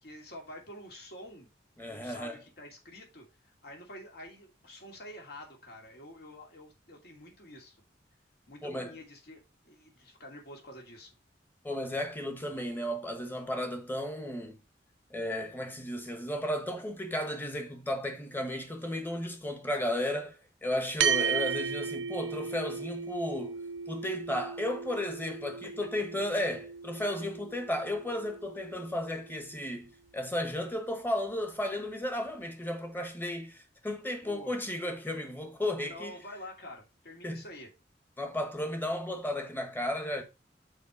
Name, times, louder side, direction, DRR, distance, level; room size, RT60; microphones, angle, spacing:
voice 1, 0.0-1.5 1.9-7.8 8.5-11.1 25.6-25.7 34.2-34.5 35.8-37.7, left 1 dB, 60° left, 2.6 m, -48 dB
voice 2, 1.8-2.4 8.6-8.9 11.6-14.6 15.1-36.2 37.2-37.4 38.2-40.2, left 1 dB, 10° left, 1.3 m, -34 dB
sound 1, 21.0-29.7, right 6 dB, 90° right, 0.5 m, -35 dB
6.4 x 4.8 x 4.8 m
head